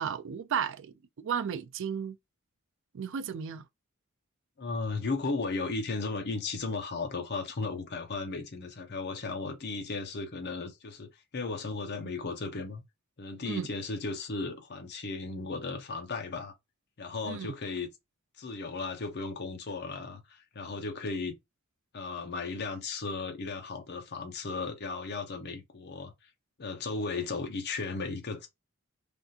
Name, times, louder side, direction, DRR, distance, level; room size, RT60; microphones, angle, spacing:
voice 1, 0.0-2.2 2.9-3.6 13.4-13.7 17.2-17.5, right 7 dB, 60° right, 0.4 m, -34 dB
voice 2, 4.6-12.8 13.2-16.5 17.0-17.9 18.4-21.4 21.9-26.1 26.6-28.5, left 3 dB, 50° left, 0.7 m, -35 dB
3.4 x 2.5 x 2.7 m
head